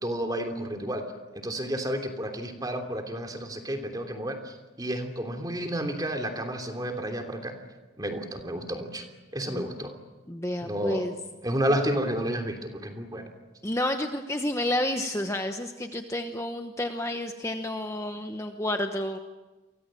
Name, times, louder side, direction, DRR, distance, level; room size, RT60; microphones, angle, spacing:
voice 1, 0.0-1.1 1.3-7.6 8.0-9.0 9.3-9.9 10.6-11.1 11.4-13.3, right 1 dB, 20° right, 4 dB, 3.0 m, -31 dB
voice 2, 10.3-11.1 13.6-19.2, left 1 dB, 15° left, 5 dB, 1.0 m, -30 dB
30.0 x 24.0 x 7.6 m, 1.2 s
head